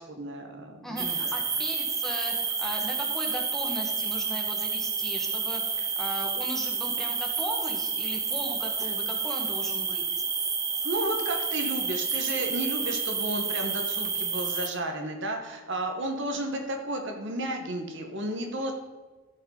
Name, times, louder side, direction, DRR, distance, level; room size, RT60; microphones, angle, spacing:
voice 1, 0.0-1.4 10.8-18.7, right 1 dB, 65° right, 3 dB, 1.4 m, -33 dB
voice 2, 0.8-10.0, equal, ahead, -1 dB, 1.5 m, -37 dB
sound 1, 1.0-14.7, right 5 dB, 20° right, 0.7 m, -30 dB
14.5 x 5.4 x 4.0 m, 1.3 s
head